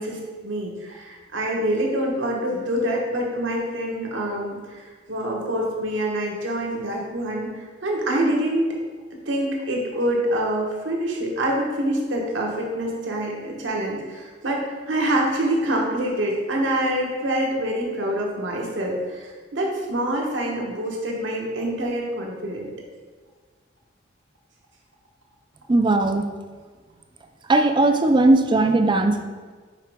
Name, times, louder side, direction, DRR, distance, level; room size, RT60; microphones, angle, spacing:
voice 1, 0.0-8.7 9.3-22.7, right 1 dB, 75° right, -1 dB, 1.2 m, -26 dB
voice 2, 25.7-26.2 27.5-29.2, right 2 dB, 25° right, 7 dB, 0.4 m, -18 dB
5.7 x 4.9 x 3.5 m, 1.5 s
head